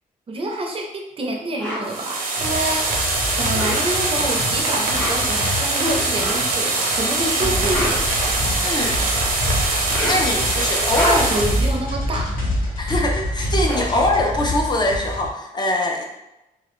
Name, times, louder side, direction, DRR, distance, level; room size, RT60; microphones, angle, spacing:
voice 1, 0.3-2.9 3.3-8.1 11.1-12.3, right 1 dB, 40° right, 1 dB, 0.4 m, -27 dB
sound 1, 1.6-1.9 3.4-4.1 4.8-5.4 6.2-6.5 7.4-8.7 9.7-10.4 10.8-11.5 13.0-13.1 13.3-15.0, equal, 10° left, 0.7 m, -30 dB
sound 2, 1.8-11.7, right 2 dB, 85° right, 0.5 m, -23 dB
sound 3, 2.4-15.3, left 1 dB, 75° left, 0.8 m, -27 dB
voice 2, 8.6-9.0 10.0-11.3 12.8-16.0, left 1 dB, 30° left, 1 dB, 0.3 m, -22 dB
2.3 x 2.1 x 3.0 m, 0.92 s
cardioid pair, 115°, 15 cm